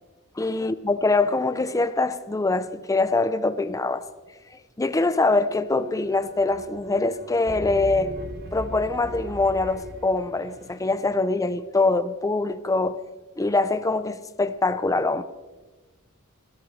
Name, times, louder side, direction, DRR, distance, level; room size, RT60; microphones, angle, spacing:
voice 1, 0.4-4.0 4.8-8.1 8.5-13.0 13.4-15.2, left 3 dB, 15° left, 0.5 m, -23 dB
sound 1, 5.6-11.0, right 1 dB, 50° right, 2.7 m, -38 dB
26.0 x 16.5 x 3.2 m
head